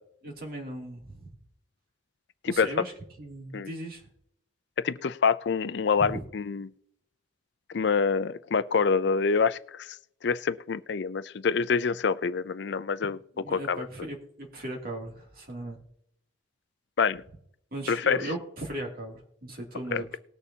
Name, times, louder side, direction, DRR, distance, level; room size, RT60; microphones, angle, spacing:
voice 1, 0.2-1.3 2.4-4.1 6.0-6.2 13.4-15.8 17.7-20.2, right 1 dB, 50° right, 2.6 m, -37 dB
voice 2, 4.8-6.7 7.7-9.9 10.2-13.2 13.5-13.9 17.0-17.2 17.9-18.2 19.9-20.0, left 5 dB, 60° left, 0.5 m, -26 dB
19.5 x 6.7 x 2.8 m
head